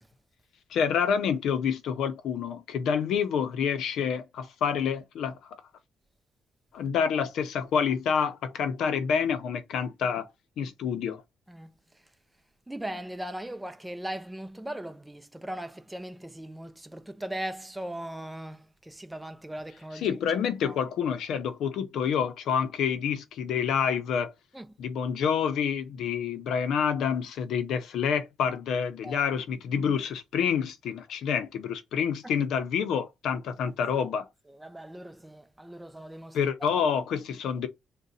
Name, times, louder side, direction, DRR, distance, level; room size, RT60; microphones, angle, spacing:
voice 1, 0.7-5.6 6.7-10.2 10.6-11.2 20.0-24.3 24.8-34.2 36.3-37.7, left 7 dB, 75° left, 0.6 m, -28 dB
voice 2, 11.5-12.0 12.7-20.2 20.6-20.8 24.5-24.7 29.0-29.2 32.2-32.3 34.5-36.8, right 1 dB, 10° right, 0.5 m, -39 dB
3.7 x 2.2 x 4.0 m
cardioid pair, 90°, 0 cm